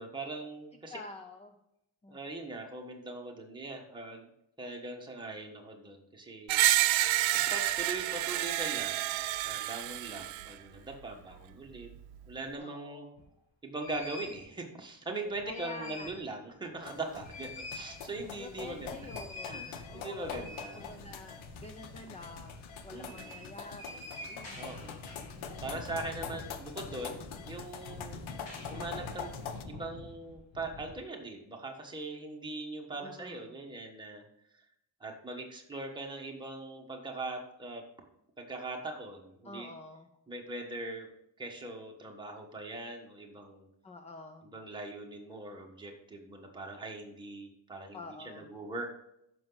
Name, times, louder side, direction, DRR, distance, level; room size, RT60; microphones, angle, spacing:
voice 1, 0.0-1.0 2.1-4.3 4.6-6.6 7.3-11.9 12.3-13.1 13.6-19.0 19.4-20.9 22.9-23.4 24.6-25.0 25.6-28.2 28.7-29.3 29.7-34.2 35.0-37.8 38.4-39.7 40.3-41.1 41.4-43.7 44.4-48.9, right 2 dB, 10° right, 0 dB, 1.3 m, -41 dB
voice 2, 0.9-1.5 2.0-2.2 12.6-13.2 15.5-16.3 18.4-20.5 20.7-25.1 33.0-33.6 39.4-40.1 43.8-44.5 47.9-48.5, left 3 dB, 15° left, 6 dB, 0.4 m, -48 dB
Screech, 6.5-10.5, right 15 dB, 80° right, 0.6 m, -29 dB
sound 1, 13.1-13.2 13.8-14.4 15.3-16.3 16.6-16.7 17.0-30.9, left 2 dB, 65° left, 3.7 m, -46 dB
sound 2, 16.8-29.6, left 7 dB, 85° left, 1.1 m, -45 dB
14.0 x 6.0 x 3.9 m, 0.81 s
cardioid pair, 175°, 46 cm